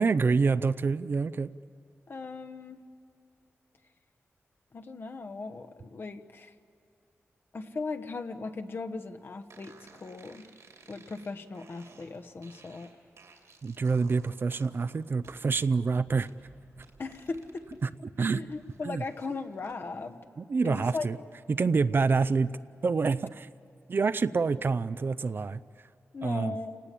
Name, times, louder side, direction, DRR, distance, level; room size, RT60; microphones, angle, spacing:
voice 1, 0.0-1.5 13.6-16.3 17.8-18.4 18.8-19.0 20.4-21.2 21.5-22.5 22.8-23.5 23.9-25.6 26.2-26.6, right 4 dB, 45° right, 14 dB, 0.5 m, -27 dB
voice 2, 2.1-2.8 4.7-6.5 7.5-9.7 10.0-10.4 10.9-12.9 17.0-17.8 18.3-20.2 20.6-21.1 26.1-26.8, left 3 dB, 50° left, 7 dB, 1.1 m, -38 dB
sound 1, 9.5-17.8 18.2-19.8, right 4 dB, 80° right, 2.8 m, -56 dB
29.0 x 19.0 x 8.4 m, 2.5 s
wide cardioid pair, 140°, 5 cm